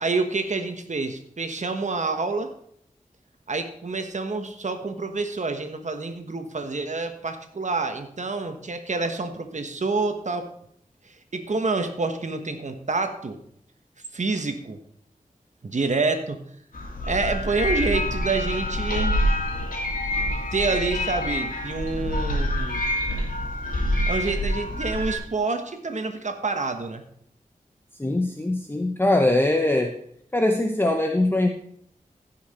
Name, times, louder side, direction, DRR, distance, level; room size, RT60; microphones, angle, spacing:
voice 1, 0.0-2.5 3.5-10.5 11.1-13.4 14.1-14.8 15.6-16.4 17.1-19.2 20.5-22.8 24.1-27.0, right 3 dB, 60° right, 6 dB, 1.3 m, -27 dB
sound 1, 16.7-25.2, left 1 dB, 80° left, 2.6 m, -26 dB
voice 2, 28.0-30.0 30.3-31.5, left 1 dB, 15° left, 4 dB, 0.8 m, -22 dB
15.5 x 5.9 x 4.3 m, 0.69 s
wide cardioid pair, 80°, 14 cm